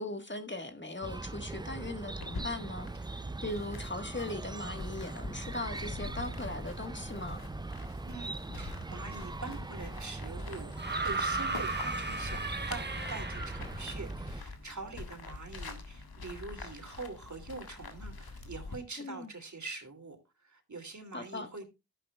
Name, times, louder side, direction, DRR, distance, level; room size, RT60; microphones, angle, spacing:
voice 1, 0.0-3.0 3.4-7.4 19.0-19.3 21.1-21.5, left 2 dB, 30° left, 1.6 m, -39 dB
Chirp tweet, 1.0-14.4, right 2 dB, 15° right, 0.4 m, -41 dB
sound 1, 2.2-18.8, left 3 dB, 85° left, 1.8 m, -45 dB
voice 2, 8.0-10.7 11.0-20.2 20.4-21.7, right 3 dB, 55° right, 2.9 m, -44 dB
sound 2, 10.8-13.8 15.1-15.2, right 3 dB, 30° right, 1.3 m, -35 dB
12.5 x 10.0 x 2.3 m
cardioid pair, 45°, 36 cm